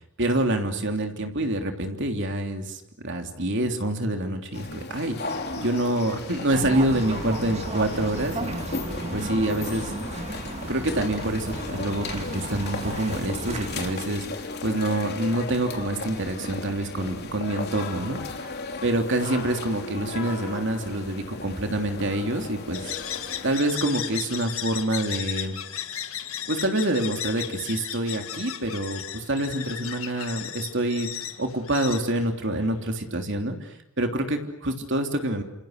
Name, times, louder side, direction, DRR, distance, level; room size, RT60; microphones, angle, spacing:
voice 1, 0.2-8.6 9.1-9.9 10.7-18.5 18.8-22.9 23.4-25.6 26.5-31.1 31.4-35.4, right 1 dB, 55° right, 4 dB, 3.3 m, -27 dB
sound 1, 4.5-23.6, left 3 dB, 45° left, 3.2 m, -36 dB
sound 2, 6.5-13.9, right 2 dB, 30° right, 2.0 m, -34 dB
sound 3, 22.7-32.9, left 10 dB, 70° left, 2.1 m, -35 dB
29.0 x 28.0 x 6.7 m, 0.78 s
head